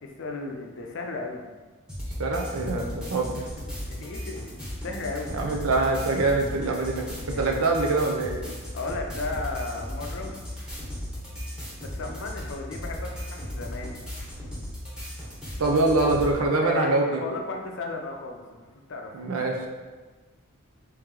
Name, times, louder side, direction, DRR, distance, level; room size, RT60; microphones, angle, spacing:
voice 1, 0.0-1.4 3.9-5.4 7.3-7.7 8.7-10.4 11.8-14.0 16.4-19.2, left 3 dB, 60° left, 2 dB, 0.5 m, -35 dB
sound 1, 1.9-16.3, equal, 5° right, 1.0 m, -36 dB
voice 2, 2.2-3.3 5.3-8.4 15.6-17.0 19.1-19.7, right 3 dB, 85° right, 1 dB, 0.6 m, -24 dB
3.2 x 3.0 x 3.7 m, 1.4 s
head